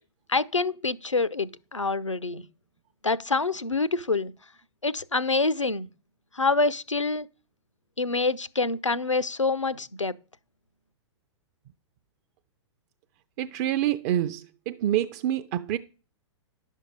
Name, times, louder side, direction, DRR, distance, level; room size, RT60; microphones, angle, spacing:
voice 1, 0.3-2.4 3.0-4.3 4.8-5.9 6.3-7.3 8.0-10.1, left 3 dB, 90° left, 0.6 m, -26 dB
voice 2, 13.4-15.8, right 12 dB, 35° right, 0.5 m, -27 dB
11.0 x 6.4 x 5.4 m
figure-of-eight pair, 110°, 15 cm